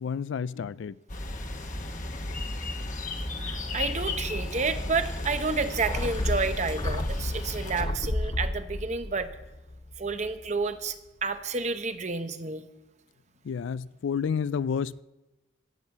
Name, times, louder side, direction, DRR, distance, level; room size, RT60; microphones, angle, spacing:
voice 1, 0.0-1.0 2.3-2.4 13.4-15.0, left 6 dB, 75° left, 0.3 m, -30 dB
sound 1, 1.1-7.8, left 2 dB, 40° left, 1.1 m, -34 dB
voice 2, 3.4-9.3 10.0-11.0 11.2-12.6, right 4 dB, 35° right, 0.8 m, -30 dB
sound 2, 5.8-10.5 10.7-10.8, left 1 dB, 25° left, 0.6 m, -32 dB
16.0 x 7.4 x 7.2 m
head